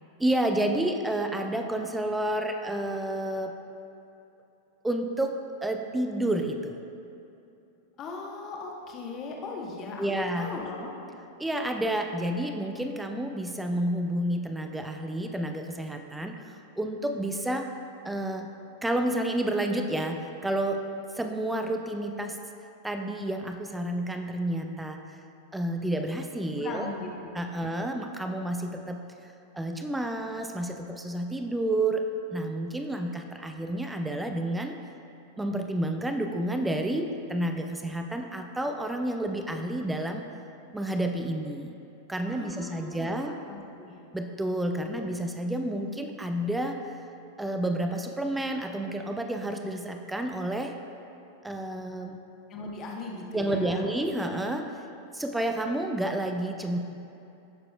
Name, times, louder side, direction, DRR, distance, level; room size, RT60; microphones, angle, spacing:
voice 1, 0.2-3.5 4.8-6.7 10.0-10.6 11.4-17.7 18.0-18.5 18.8-20.8 21.1-22.4 22.8-25.2 25.5-26.9 27.3-29.0 29.5-32.0 32.3-34.8 35.4-40.3 40.7-41.7 42.1-43.3 44.1-47.0 47.4-50.7 51.4-52.2 53.3-54.7 55.1-56.8, right 1 dB, 5° right, 4 dB, 0.5 m, -30 dB
voice 2, 8.0-10.9 26.6-27.3 27.6-27.7 42.2-43.1 43.5-43.9 52.5-53.9, left 3 dB, 30° left, -1 dB, 1.3 m, -38 dB
16.5 x 6.7 x 2.4 m, 2.8 s
figure-of-eight pair, 90°, 0 cm